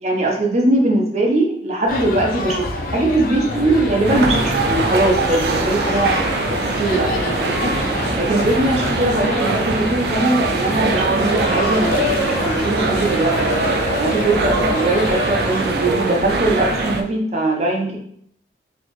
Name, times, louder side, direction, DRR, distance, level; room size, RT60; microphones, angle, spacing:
voice 1, 0.0-6.2 6.8-7.7 8.2-13.3 14.0-18.0, right 2 dB, 40° right, 0 dB, 0.8 m, -20 dB
sound 1, 1.9-15.6, left 2 dB, 50° left, 0.5 m, -26 dB
sound 2, 3.5-17.0, equal, ahead, 0.7 m, -30 dB
sound 3, 4.0-17.0, right 4 dB, 65° right, 0.4 m, -23 dB
4.2 x 2.9 x 3.1 m, 0.65 s
head